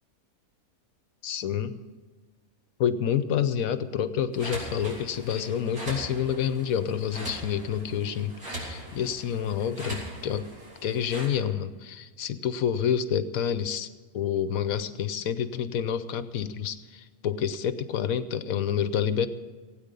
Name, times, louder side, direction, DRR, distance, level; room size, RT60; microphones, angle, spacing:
voice 1, 1.2-1.8 2.8-10.5 10.8-13.9 14.1-19.3, left 8 dB, 70° left, 13 dB, 1.2 m, -28 dB
sound 1, 4.3-11.2, right 1 dB, 70° right, 4.3 m, -40 dB
17.0 x 9.0 x 6.8 m, 1.4 s
omnidirectional pair, 1.6 m